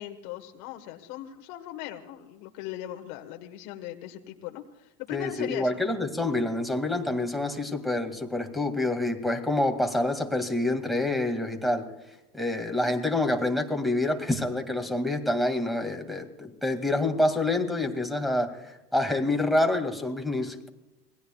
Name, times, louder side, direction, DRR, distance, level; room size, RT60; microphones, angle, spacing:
voice 1, 0.0-5.7, left 13 dB, 65° left, 4 dB, 1.8 m, -39 dB
voice 2, 5.1-11.9 12.3-20.7, left 2 dB, ahead, 3 dB, 2.3 m, -27 dB
26.5 x 19.5 x 2.4 m, 0.95 s
hypercardioid pair, 95°, 49 cm